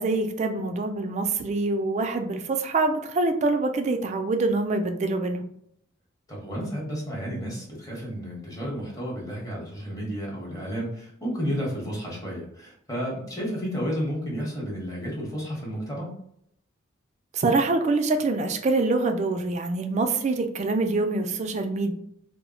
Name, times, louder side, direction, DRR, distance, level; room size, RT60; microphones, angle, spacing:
voice 1, 0.0-5.4 17.3-21.9, right 3 dB, 35° right, 6 dB, 0.3 m, -25 dB
voice 2, 6.3-16.1, equal, 20° left, -4 dB, 0.9 m, -32 dB
2.1 x 2.0 x 3.7 m, 0.70 s
head